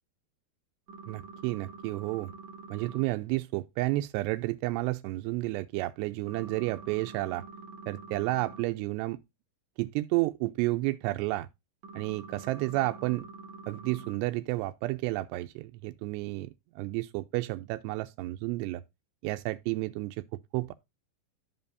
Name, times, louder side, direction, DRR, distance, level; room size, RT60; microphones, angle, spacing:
sound 1, 0.9-3.0 6.3-8.6 11.8-14.2, right 4 dB, 55° right, 2.1 m, -46 dB
voice 1, 1.1-2.3 2.7-7.4 7.9-9.2 9.8-11.5 12.0-13.2 13.7-16.5 16.8-18.8 19.2-20.2 20.5-20.7, right 19 dB, 80° right, 2.6 m, -31 dB
14.0 x 5.5 x 2.6 m
omnidirectional pair, 5.1 m